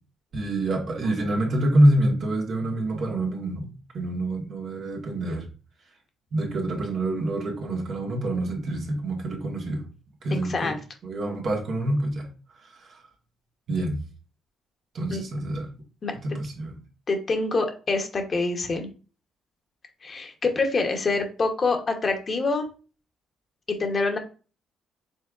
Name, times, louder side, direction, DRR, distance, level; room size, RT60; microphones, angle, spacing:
voice 1, 0.3-5.5 6.3-9.8 10.2-10.8 11.0-12.3 12.6-13.0 13.7-14.0 14.9-15.7 16.2-16.7, right 1 dB, 60° right, 0 dB, 1.5 m, -26 dB
voice 2, 10.3-10.8 15.1-15.2 16.0-16.1 17.1-18.9 20.0-22.7 23.7-24.2, left 3 dB, 40° left, 4 dB, 1.0 m, -26 dB
5.4 x 3.5 x 2.5 m, 0.35 s
supercardioid pair, 70°, 0 cm